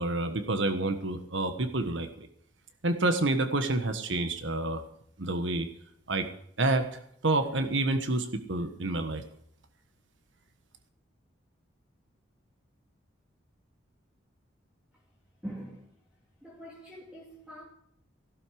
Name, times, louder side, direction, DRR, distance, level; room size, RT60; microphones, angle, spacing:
voice 1, 0.0-2.3 2.8-4.8 5.2-5.7 6.1-6.3 6.6-9.2, right 2 dB, 75° right, 1.4 m, -28 dB
voice 2, 15.4-16.0 16.4-17.6, equal, 5° right, 2.6 m, -43 dB
15.5 x 12.5 x 4.9 m
head